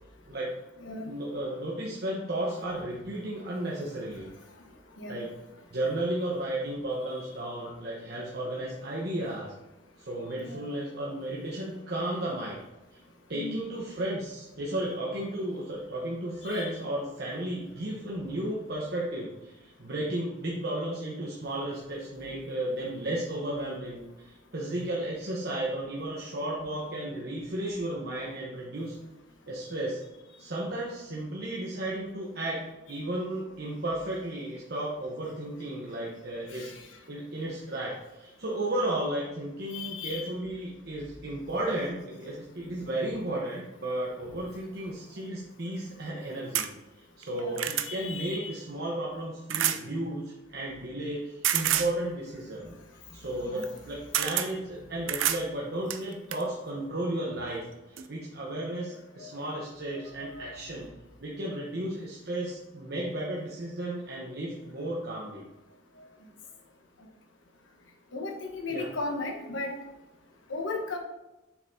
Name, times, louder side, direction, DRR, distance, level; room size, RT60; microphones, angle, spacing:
voice 1, 1.1-4.3 5.1-5.3 5.7-9.5 10.0-12.6 12.9-13.0 13.3-29.0 29.5-30.0 30.4-36.7 37.1-46.7 47.0-52.7 53.1-60.9 61.2-65.4 68.7-68.9, right 1 dB, 55° right, -4 dB, 1.0 m, -34 dB
voice 2, 16.4-16.7 36.5-36.8 39.7-40.3 47.3-48.6 52.6-52.7 53.4-53.7 59.2-59.6 59.9-60.6 68.1-69.8 70.5-71.0, left 3 dB, 80° left, 2 dB, 1.2 m, -37 dB
sound 1, 46.5-46.7 47.2-47.9 49.5-49.8 51.4-51.9 53.6-53.8 54.1-54.5 55.1-55.4 55.9-56.4 57.5-57.6 58.0-58.1, right 11 dB, 85° right, 0.5 m, -28 dB
7.2 x 5.5 x 2.7 m, 0.99 s
head